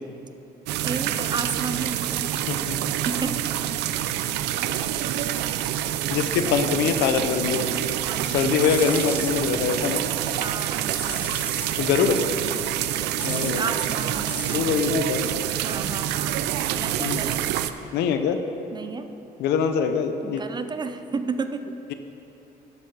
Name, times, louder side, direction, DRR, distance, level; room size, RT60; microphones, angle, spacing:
sound 1, 0.7-17.7, right 12 dB, 85° right, 0.5 m, -27 dB
voice 1, 0.8-2.4 2.8-3.4 8.0-8.5 10.4-11.3 13.2-15.1 15.6-16.3 16.7-17.5 18.7-19.1 20.2-21.8, right 5 dB, 25° right, 9 dB, 0.5 m, -32 dB
voice 2, 2.5-2.8 6.1-7.7 8.2-10.0 11.8-12.2 13.2-13.7 14.5-15.2 17.0-17.2 17.9-18.4 19.4-20.4, left 7 dB, 85° left, 8 dB, 0.8 m, -23 dB
sound 2, 8.6-10.0 10.4-11.8 12.1-14.7, left 2 dB, 10° left, 1.0 m, -37 dB
12.0 x 7.1 x 4.8 m, 2.9 s
cardioid pair, 110°, 17 cm